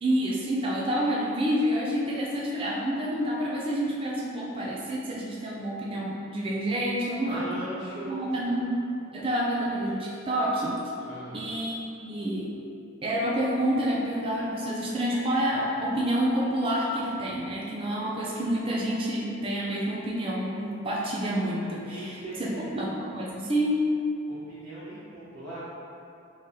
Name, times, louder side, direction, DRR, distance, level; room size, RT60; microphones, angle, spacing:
voice 1, 0.0-7.5 8.0-8.7 9.1-10.8 11.3-12.5 13.0-23.9, equal, 25° right, -4 dB, 0.4 m, -28 dB
voice 2, 7.3-8.5 11.0-11.4 21.8-22.7 24.3-25.6, right 1 dB, 60° right, -15 dB, 1.1 m, -39 dB
3.7 x 3.2 x 2.7 m, 2.7 s
head